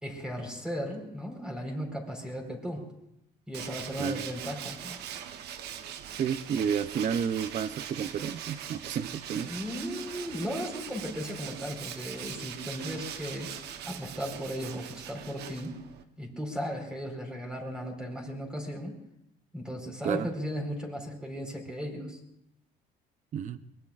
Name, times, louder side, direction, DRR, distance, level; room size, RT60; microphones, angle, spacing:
voice 1, 0.0-2.8 3.5-5.0 9.4-15.7 16.2-18.9 19.5-22.2, equal, 5° right, 0 dB, 4.4 m, -36 dB
Tools, 3.5-16.0, right 9 dB, 75° right, 1.0 m, -41 dB
voice 2, 6.1-9.5 20.0-20.3 23.3-23.6, right 7 dB, 45° right, 13 dB, 0.7 m, -31 dB
23.5 x 21.5 x 2.5 m, 0.79 s
cardioid pair, 110°, 17 cm